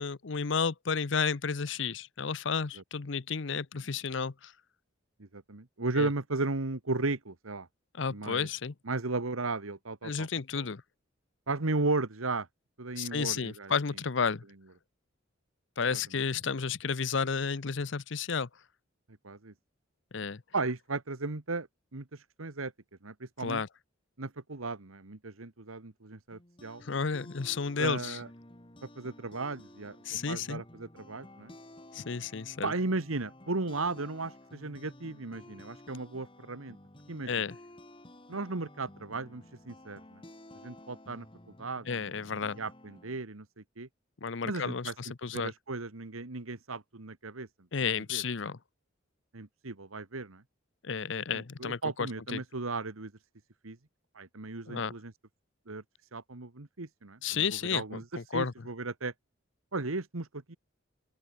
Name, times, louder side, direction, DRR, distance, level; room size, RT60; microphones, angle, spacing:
voice 1, 0.0-4.5 6.0-6.1 8.0-8.7 10.0-10.8 13.0-14.4 15.8-18.5 20.1-20.4 23.4-23.7 26.8-28.2 30.0-30.6 31.9-32.7 37.3-37.5 41.9-42.6 44.2-45.5 47.7-48.6 50.8-52.4 54.7-54.9 57.2-58.0 58.3-58.5, left 5 dB, 60° left, 0.7 m, -32 dB
voice 2, 5.2-7.7 8.1-8.5 8.9-10.3 10.6-10.7 11.5-12.5 12.8-13.7 15.9-16.0 19.2-19.5 20.5-22.7 23.0-23.6 24.2-26.8 27.8-28.3 28.8-30.0 30.3-31.5 32.6-36.8 37.1-37.4 38.3-40.2 40.6-41.3 41.6-42.1 42.5-43.9 44.4-44.9 45.3-47.5 48.1-48.2 49.3-50.4 51.3-53.1 53.6-53.8 54.1-55.1 55.7-55.8 56.1-59.1 59.7-60.6, right 3 dB, 90° right, 1.6 m, -35 dB
sound 1, 26.3-43.2, left 1 dB, 25° left, 2.6 m, -53 dB
open air
head